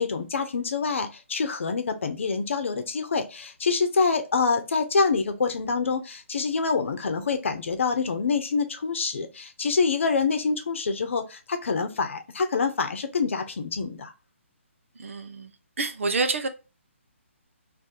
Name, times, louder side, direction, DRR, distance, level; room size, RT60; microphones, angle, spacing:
voice 1, 0.0-14.1, left 4 dB, 65° left, 8 dB, 0.8 m, -26 dB
voice 2, 15.0-15.5 15.8-16.5, right 3 dB, 70° right, 7 dB, 0.8 m, -27 dB
2.8 x 2.7 x 3.6 m, 0.29 s
hypercardioid pair, 155°, 7 cm